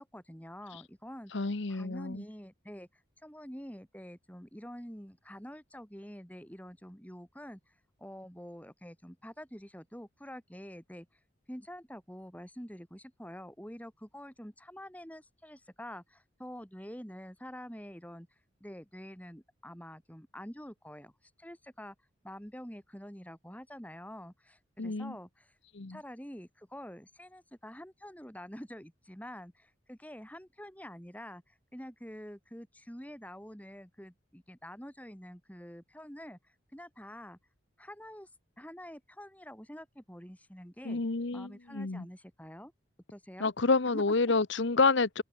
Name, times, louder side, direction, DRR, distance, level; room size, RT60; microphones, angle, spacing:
voice 1, 0.0-1.3 1.7-11.1 11.5-18.3 18.6-21.1 21.4-22.0 22.2-25.6 25.9-37.4 37.8-38.3 38.6-41.0 41.3-42.7 43.1-43.5 43.9-44.1, equal, 10° left, 7.0 m, -47 dB
voice 2, 1.3-2.2 24.8-25.1 25.7-26.0 40.8-42.0 43.4-45.2, left 3 dB, 65° left, 1.0 m, -28 dB
head